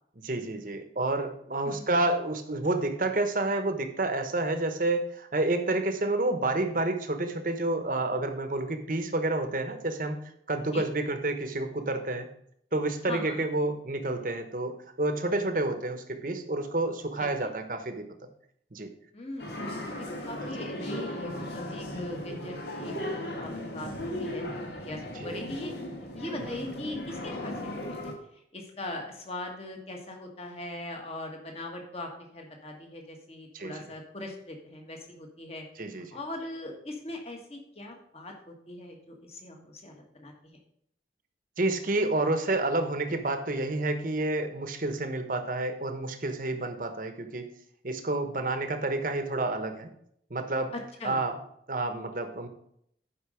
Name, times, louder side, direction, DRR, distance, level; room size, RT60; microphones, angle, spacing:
voice 1, 0.2-10.2 10.5-12.3 12.7-18.0 18.7-18.9 20.4-20.5 25.2-25.4 33.5-33.9 35.8-36.1 41.6-47.5 47.8-49.9 50.3-50.7 51.0-51.4 51.7-52.5, right 2 dB, 50° right, 7 dB, 1.0 m, -29 dB
voice 2, 13.0-13.4 17.2-17.5 19.1-19.6 19.9-25.7 26.1-28.1 28.5-35.6 36.1-40.3 50.7-51.2, left 1 dB, 35° left, 2 dB, 1.6 m, -40 dB
sound 1, 19.4-28.1, left 1 dB, 65° left, 1.5 m, -36 dB
11.5 x 5.3 x 5.0 m, 0.70 s
head